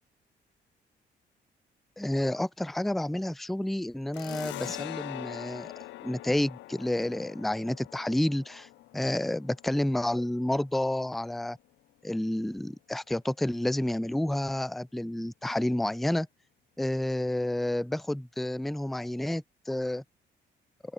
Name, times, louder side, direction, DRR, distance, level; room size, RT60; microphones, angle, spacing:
voice 1, 2.0-5.7 6.0-11.6 12.0-16.3 16.8-20.0, left 1 dB, ahead, 0.4 m, -30 dB
sound 1, 4.1-11.3, left 17 dB, 90° left, 0.6 m, -43 dB
open air
cardioid pair, 100°, 19 cm